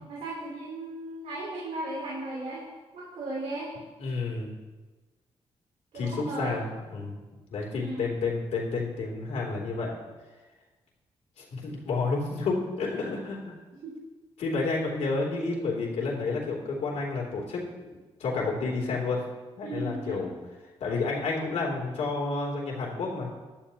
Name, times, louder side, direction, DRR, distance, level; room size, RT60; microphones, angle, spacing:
voice 1, 0.1-2.6 2.9-3.7 5.9-6.6 7.8-8.0 13.7-13.9 19.6-20.3, right 2 dB, 80° right, -6 dB, 3.3 m, -36 dB
voice 2, 4.0-4.5 5.9-7.2 7.5-10.0 11.4-13.5 14.4-19.2 19.6-20.3 20.8-23.3, left 3 dB, 80° left, -3 dB, 3.1 m, -30 dB
17.0 x 11.5 x 2.9 m, 1.2 s
cardioid pair, 90°, 11 cm